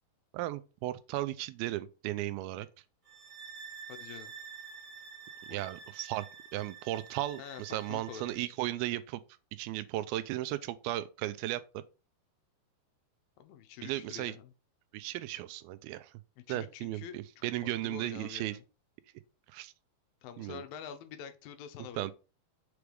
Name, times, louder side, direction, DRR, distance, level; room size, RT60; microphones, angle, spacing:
voice 1, 0.3-2.7 5.5-6.3 6.5-9.2 9.6-11.8 13.8-14.3 14.9-16.1 16.5-18.6 19.5-19.7 20.4-20.6 22.0-22.1, right 15 dB, 85° right, 2.4 m, -35 dB
sound 1, 3.0-8.4, right 6 dB, 20° right, 0.8 m, -49 dB
voice 2, 3.9-4.3 5.5-5.6 7.4-8.4 13.4-14.5 16.4-18.6 20.2-22.1, left 8 dB, 75° left, 2.4 m, -47 dB
7.0 x 3.4 x 4.7 m
omnidirectional pair, 4.4 m